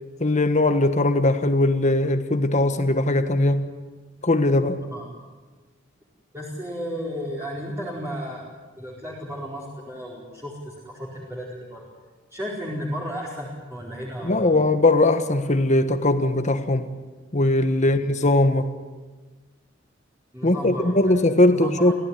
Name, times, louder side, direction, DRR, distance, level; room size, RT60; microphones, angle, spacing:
voice 1, 0.2-3.6 4.2-4.8 14.2-16.9 17.3-18.7 20.4-21.9, left 2 dB, 40° left, 8 dB, 1.4 m, -20 dB
voice 2, 6.3-8.4 8.8-11.8 12.3-14.6 17.8-18.1 20.3-21.9, equal, 15° right, -4 dB, 4.6 m, -34 dB
27.5 x 16.5 x 9.8 m, 1.3 s
head